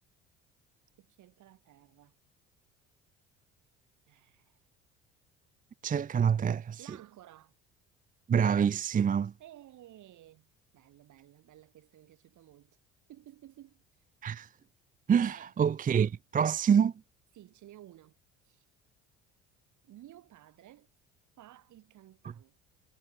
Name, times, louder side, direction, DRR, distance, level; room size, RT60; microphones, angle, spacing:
voice 1, 1.0-2.1 4.1-4.6 6.8-7.6 9.4-12.8 13.1-13.8 15.2-15.6 17.3-18.7 19.8-20.9 21.4-22.6, right 13 dB, 60° right, 7.8 m, -55 dB
voice 2, 5.8-6.8 8.3-9.3 14.2-14.5 15.1-16.9, right 7 dB, 25° right, 0.6 m, -26 dB
hypercardioid pair, 65°, 34 cm